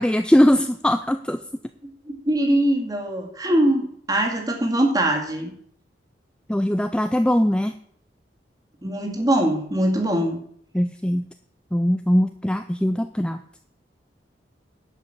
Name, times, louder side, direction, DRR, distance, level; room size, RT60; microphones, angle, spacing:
voice 1, 0.0-1.4 6.5-7.7 10.7-11.3 11.7-13.4, equal, 5° left, 8 dB, 0.4 m, -20 dB
voice 2, 1.8-3.8 4.1-5.5 8.8-10.4, right 1 dB, 20° right, 2 dB, 2.2 m, -22 dB
11.0 x 5.4 x 7.6 m, 0.63 s
head